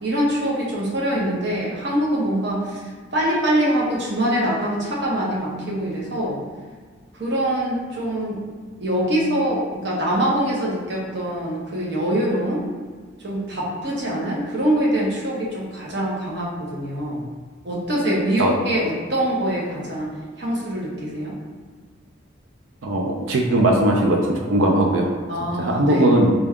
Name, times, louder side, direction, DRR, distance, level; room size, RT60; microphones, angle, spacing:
voice 1, 0.0-2.8 3.1-6.4 7.2-8.4 8.8-12.6 13.2-17.2 17.6-20.1 20.4-21.3 25.3-26.1, right 1 dB, 60° right, -5 dB, 1.0 m, -24 dB
voice 2, 22.8-25.1 25.6-26.3, right 1 dB, 80° right, 0 dB, 0.5 m, -19 dB
3.9 x 2.3 x 3.6 m, 1.5 s
head